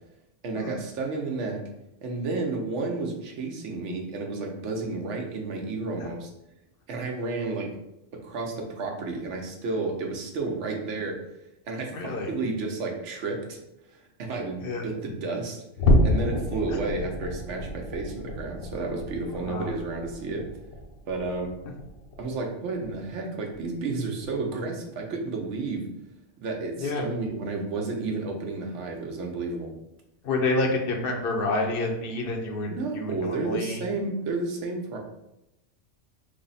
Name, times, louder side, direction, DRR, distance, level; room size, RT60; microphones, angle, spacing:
voice 1, 0.4-1.6 2.0-6.3 6.9-7.7 8.1-11.2 11.7-13.6 13.9-15.6 16.0-20.5 21.1-21.6 22.2-25.9 26.4-29.7 32.7-35.0, right 3 dB, 70° right, 1 dB, 1.0 m, -31 dB
voice 2, 11.9-12.3 14.6-14.8 19.4-19.7 26.8-27.1 30.2-33.8, left 2 dB, 60° left, 2 dB, 0.7 m, -28 dB
sound 1, 15.8-22.4 22.8-23.1 23.5-23.6 24.2-24.3, left 1 dB, 85° left, 1.0 m, -28 dB
3.4 x 2.0 x 3.9 m, 0.85 s
omnidirectional pair, 1.3 m